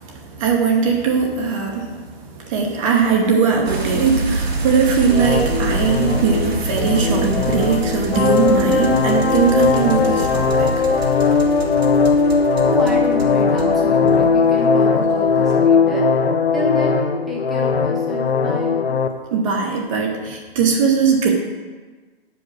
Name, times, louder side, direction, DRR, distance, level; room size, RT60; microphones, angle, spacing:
voice 1, 0.0-10.8 19.3-21.3, right 5 dB, 30° right, 1 dB, 1.0 m, -19 dB
sound 1, 3.6-14.6 14.9-15.6, right 2 dB, 90° right, 2.1 m, -26 dB
sound 2, 5.1-19.1, left 5 dB, 85° left, 0.9 m, -18 dB
voice 2, 12.7-16.0 16.5-18.8, equal, ahead, -6 dB, 1.1 m, -27 dB
8.3 x 5.1 x 6.2 m, 1.4 s
hypercardioid pair, 150°, 30 cm